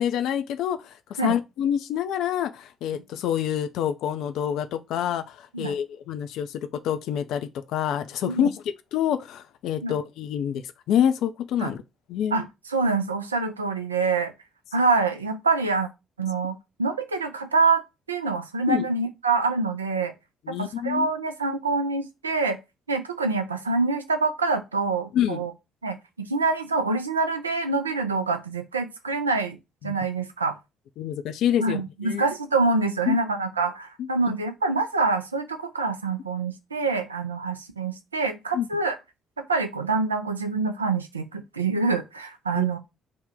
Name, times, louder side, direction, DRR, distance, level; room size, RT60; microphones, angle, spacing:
voice 1, 0.0-8.5 8.9-11.8 12.1-12.4 18.7-18.9 20.5-21.1 25.1-25.4 29.8-30.0 31.0-32.2 33.1-33.2 34.3-34.4 38.5-38.7 42.6-42.7, left 9 dB, 60° left, 0.3 m, -27 dB
voice 2, 12.3-14.3 14.7-15.9 16.2-17.8 18.1-20.1 20.5-22.6 22.9-25.5 25.8-29.6 29.8-30.6 31.6-39.0 39.5-42.8, right 3 dB, 85° right, 0.4 m, -26 dB
3.4 x 2.1 x 3.6 m
figure-of-eight pair, 45°, 0 cm